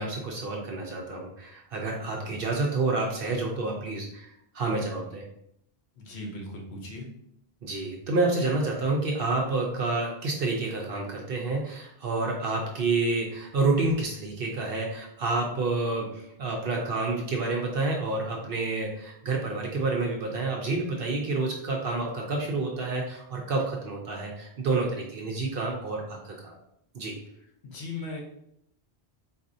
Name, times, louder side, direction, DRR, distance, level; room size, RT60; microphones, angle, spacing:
voice 1, 0.0-5.2 7.6-26.5 26.9-27.2, right 3 dB, 65° right, 0 dB, 0.8 m, -29 dB
voice 2, 6.0-7.1 27.6-28.2, left 2 dB, 75° left, 0 dB, 1.1 m, -38 dB
4.0 x 2.6 x 2.6 m, 0.74 s
omnidirectional pair, 1.1 m